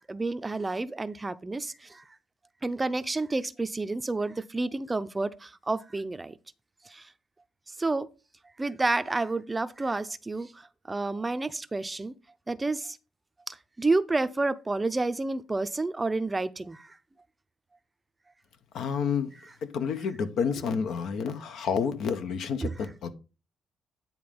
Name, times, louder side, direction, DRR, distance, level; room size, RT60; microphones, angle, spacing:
voice 1, 0.1-2.0 2.6-6.3 6.9-7.1 7.8-8.1 8.6-12.1 12.5-13.0 13.5-17.0 22.6-22.7, right 3 dB, 20° right, 0.5 m, -30 dB
voice 2, 18.7-19.3 19.6-23.1, left 6 dB, 75° left, 1.0 m, -29 dB
9.6 x 3.7 x 5.2 m
cardioid pair, 90°, 0 cm